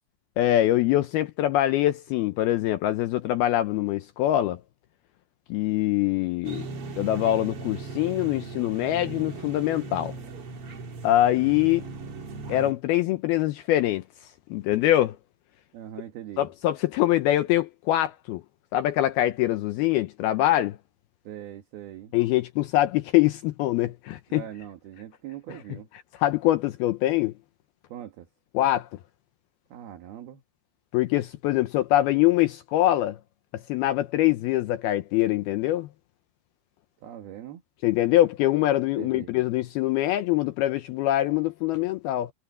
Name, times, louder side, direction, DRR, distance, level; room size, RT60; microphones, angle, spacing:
voice 1, 0.4-4.6 5.5-6.7 7.0-10.1 11.0-11.9 12.5-14.0 14.5-15.2 16.4-18.4 18.7-20.8 22.1-24.4 26.2-27.3 28.5-28.9 30.9-33.2 33.5-35.9 37.8-42.3, left 14 dB, 80° left, 2.3 m, -24 dB
sound 1, 6.4-12.7, right 3 dB, 45° right, 2.1 m, -38 dB
voice 2, 15.7-16.5 21.3-22.1 24.3-25.9 27.9-28.3 29.7-30.4 37.0-37.6 39.0-39.3, right 11 dB, 65° right, 3.4 m, -41 dB
omnidirectional pair, 5.2 m